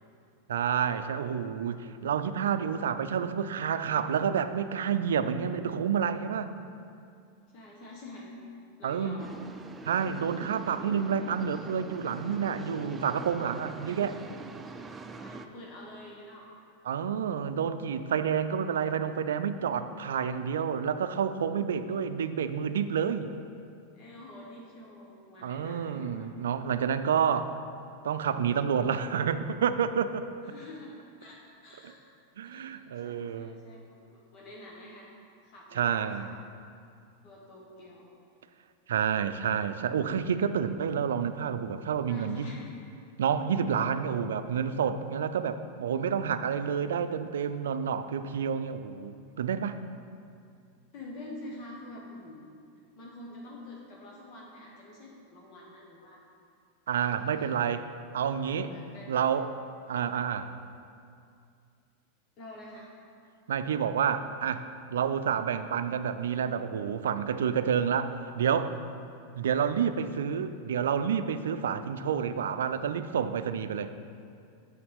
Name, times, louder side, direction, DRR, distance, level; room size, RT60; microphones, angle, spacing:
voice 1, 0.5-6.5 8.8-9.2 9.8-14.2 16.9-23.3 25.4-27.5 28.0-30.3 31.8-31.9 32.4-33.5 35.7-36.3 38.9-42.5 43.2-49.8 56.9-57.9 58.1-58.7 59.1-59.5 59.9-60.5 63.5-68.8 69.4-73.9, right 7 dB, 80° right, 11 dB, 0.4 m, -29 dB
voice 2, 7.5-8.3 8.8-9.4 15.2-16.5 23.9-26.3 30.4-32.0 32.4-32.7 33.0-35.1 35.4-36.3 37.2-38.0 42.1-42.7 50.9-52.5 53.0-56.2 57.2-57.5 58.7-59.1 62.4-62.9, left 1 dB, 50° left, -3 dB, 1.5 m, -47 dB
sound 1, 9.2-15.5, right 4 dB, 20° right, 0.4 m, -44 dB
7.0 x 6.5 x 5.3 m, 2.4 s
hypercardioid pair, 110°, 0 cm